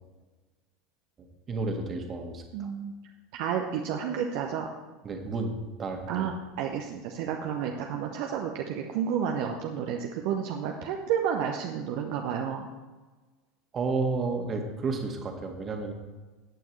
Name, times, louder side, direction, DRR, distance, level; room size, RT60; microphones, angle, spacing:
voice 1, 1.2-2.7 5.0-6.3 13.7-15.9, right 3 dB, 30° right, 4 dB, 1.7 m, -32 dB
voice 2, 2.5-2.9 3.3-4.7 6.1-6.3 6.6-12.7, right 8 dB, 55° right, 2 dB, 0.8 m, -31 dB
14.5 x 9.1 x 3.2 m, 1.3 s
figure-of-eight pair, 75°, 0 cm